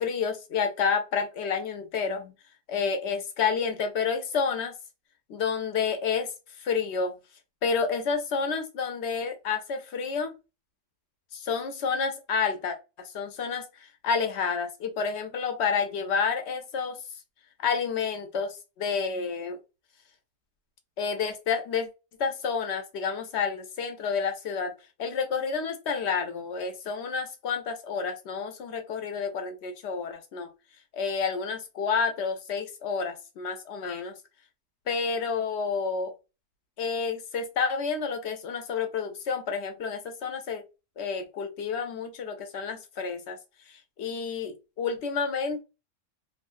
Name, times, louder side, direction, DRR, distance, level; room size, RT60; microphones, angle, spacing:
voice 1, 0.0-2.3 2.7-4.8 5.3-6.3 6.6-7.1 7.6-10.3 11.3-17.0 17.6-19.6 21.0-21.9 22.2-24.7 25.0-30.5 30.9-34.2 34.9-36.1 36.8-40.6 41.0-43.4 43.7-45.6, left 5 dB, 60° left, 6 dB, 0.9 m, -29 dB
3.1 x 2.3 x 2.5 m, 0.28 s
omnidirectional pair, 1.3 m